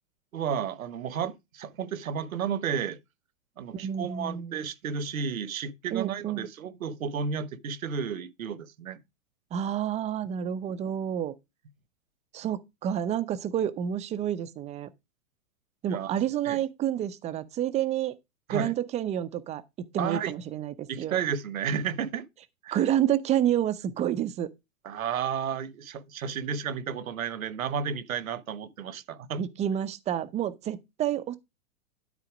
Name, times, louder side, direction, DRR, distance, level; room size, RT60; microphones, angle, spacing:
voice 1, 0.3-3.0 3.6-9.0 15.9-16.1 16.4-16.6 18.5-18.7 20.0-20.3 20.9-22.3 22.6-22.8 24.8-29.4, right 7 dB, 85° right, 1.3 m, -32 dB
voice 2, 3.7-4.6 5.9-6.5 9.5-11.3 12.3-14.9 15.8-18.1 18.5-21.2 22.7-24.5 29.4-31.4, right 10 dB, 15° right, 0.6 m, -29 dB
12.5 x 4.2 x 5.0 m
hypercardioid pair, 135°, 40 cm